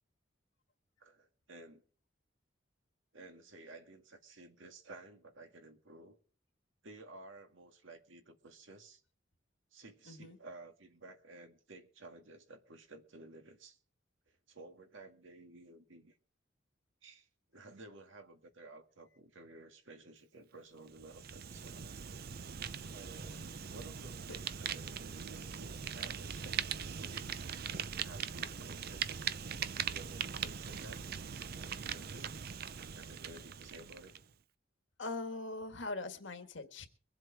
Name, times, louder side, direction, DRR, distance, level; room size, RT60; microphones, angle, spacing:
voice 1, 1.0-1.8 3.1-6.2 6.8-9.0 9.7-13.8 14.3-16.2 17.0-17.3 17.5-21.9 22.9-26.6 27.0-27.5 28.0-29.3 29.9-31.0 31.5-32.3 32.9-34.1, right 2 dB, 80° right, 1.9 m, -54 dB
voice 2, 10.1-10.4 24.3-24.4 35.0-36.9, left 2 dB, 70° left, 1.7 m, -41 dB
Fire, 20.9-34.2, right 7 dB, 50° right, 0.6 m, -41 dB
23.0 x 7.7 x 4.7 m
head